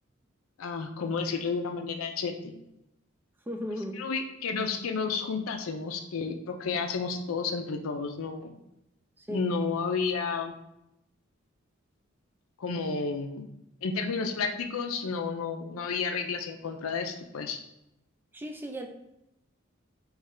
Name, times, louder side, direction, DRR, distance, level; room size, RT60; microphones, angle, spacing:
voice 1, 0.6-2.5 4.0-8.5 9.3-10.6 12.6-13.5 13.8-17.6, left 5 dB, 85° left, 6 dB, 0.5 m, -31 dB
voice 2, 3.5-4.0 9.2-9.4 18.3-18.9, equal, 10° right, 3 dB, 0.3 m, -36 dB
3.3 x 3.1 x 3.6 m, 0.86 s
head